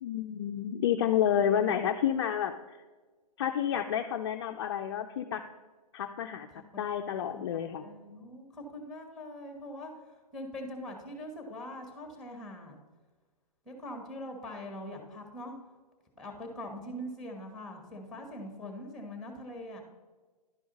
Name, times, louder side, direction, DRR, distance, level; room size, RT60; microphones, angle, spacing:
voice 1, 0.0-2.8 3.4-5.4 5.9-6.5 6.8-7.9, left 9 dB, 40° left, 5 dB, 0.4 m, -30 dB
voice 2, 6.5-6.8 7.3-12.8 13.6-15.6 16.1-19.8, left 1 dB, ahead, 3 dB, 1.4 m, -43 dB
11.0 x 4.8 x 4.0 m, 1.3 s
hypercardioid pair, 150°, 21 cm